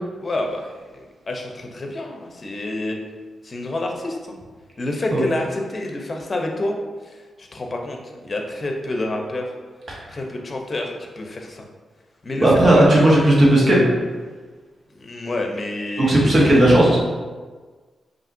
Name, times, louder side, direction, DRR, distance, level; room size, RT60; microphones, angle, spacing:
voice 1, 0.2-3.0 3.4-4.3 4.8-6.8 7.0-8.0 8.2-9.5 10.1-11.6 12.2-12.8 14.9-16.4, left 2 dB, 40° left, 2 dB, 0.7 m, -28 dB
voice 2, 12.4-13.9 16.0-17.0, right 1 dB, 50° right, -5 dB, 1.4 m, -14 dB
5.6 x 2.8 x 2.7 m, 1.4 s
cardioid pair, 70°, 0 cm